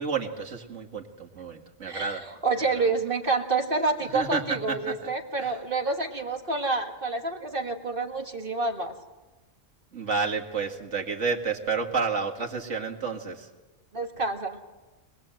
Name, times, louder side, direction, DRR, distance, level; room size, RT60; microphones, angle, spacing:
voice 1, 0.0-2.2 2.7-2.9 4.1-4.4 4.9-5.0 5.4-5.5 9.9-13.5, right 5 dB, 70° right, 2 dB, 2.4 m, -30 dB
voice 2, 1.9-8.9 13.9-14.7, right 3 dB, 45° right, 5 dB, 1.7 m, -28 dB
23.5 x 20.5 x 7.8 m, 1.2 s
omnidirectional pair, 1.3 m